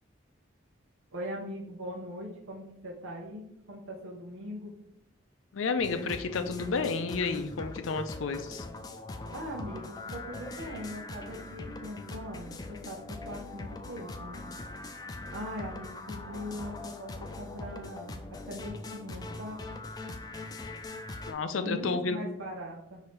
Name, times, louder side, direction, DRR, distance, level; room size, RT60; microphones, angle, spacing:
voice 1, 1.1-4.7 9.3-13.0 13.2-14.4 15.3-19.6 21.6-23.0, equal, 80° right, -3 dB, 0.8 m, -41 dB
voice 2, 5.5-8.7 21.3-22.2, left 4 dB, 80° left, 9 dB, 0.5 m, -31 dB
sound 1, 5.8-21.3, left 2 dB, 20° left, 0.3 m, -42 dB
6.0 x 2.7 x 3.2 m, 0.78 s
head